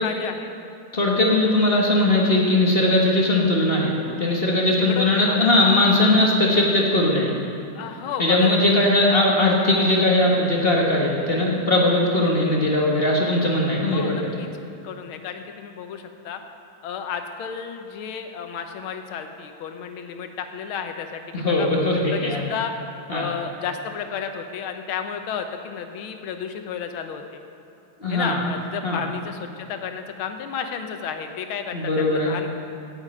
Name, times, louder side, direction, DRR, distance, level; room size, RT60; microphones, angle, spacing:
voice 1, 0.0-0.5 4.7-5.5 7.7-9.3 13.9-14.5 14.8-16.4 16.8-22.7 23.1-27.4 28.1-32.5, left 7 dB, 80° left, 6 dB, 1.6 m, -32 dB
voice 2, 0.9-7.3 8.2-14.2 21.3-22.4 23.1-23.3 28.0-28.4 28.8-29.0 31.7-32.3, left 1 dB, 30° left, -2 dB, 1.3 m, -19 dB
8.7 x 8.2 x 8.6 m, 2.6 s
omnidirectional pair, 2.3 m